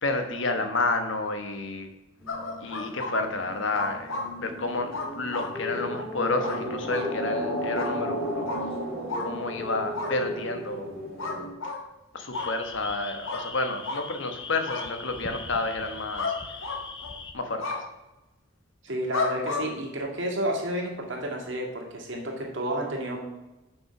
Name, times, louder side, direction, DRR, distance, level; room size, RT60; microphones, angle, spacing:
voice 1, 0.0-1.9 2.6-8.4 9.2-10.9 12.1-16.3 17.3-17.9, left 3 dB, 65° left, 6 dB, 1.2 m, -30 dB
sound 1, 2.2-11.5, equal, 5° left, 2.9 m, -34 dB
sound 2, 2.3-3.1 3.7-4.3 4.9-5.5 6.4-6.6 6.9-7.1 7.8-7.9 8.5-8.6 9.1-9.3 9.9-10.1 11.2-11.8 12.3-12.5 13.3-13.4 13.8-14.0 14.7-14.9 16.2-16.4 16.6-17.1 17.6-17.8 19.1-19.6, left 3 dB, 85° left, 1.6 m, -31 dB
sound 3, 12.3-17.3, left 4 dB, 25° left, 0.7 m, -41 dB
voice 2, 18.8-23.2, right 1 dB, 65° right, -1 dB, 2.2 m, -31 dB
7.3 x 5.6 x 5.9 m, 1.0 s
head